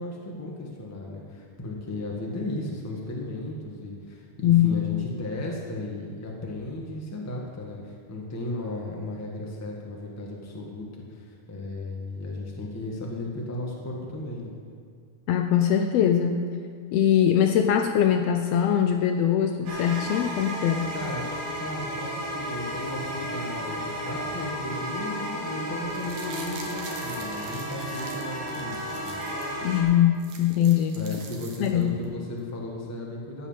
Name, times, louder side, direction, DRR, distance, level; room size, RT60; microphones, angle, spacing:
voice 1, 0.0-14.5 20.9-21.2 21.6-29.2 30.9-33.5, left 1 dB, 10° left, -2 dB, 0.7 m, -35 dB
voice 2, 4.4-4.8 15.3-16.4 16.9-20.9 29.6-31.0 31.6-31.9, left 9 dB, 90° left, 5 dB, 1.4 m, -22 dB
sound 1, 19.7-29.8, equal, 85° right, 4.1 m, -33 dB
sound 2, 25.8-29.5 29.9-30.0 30.1-32.0 32.4-32.5, right 4 dB, 60° right, 2.2 m, -44 dB
15.5 x 5.7 x 7.4 m, 2.2 s
omnidirectional pair, 3.5 m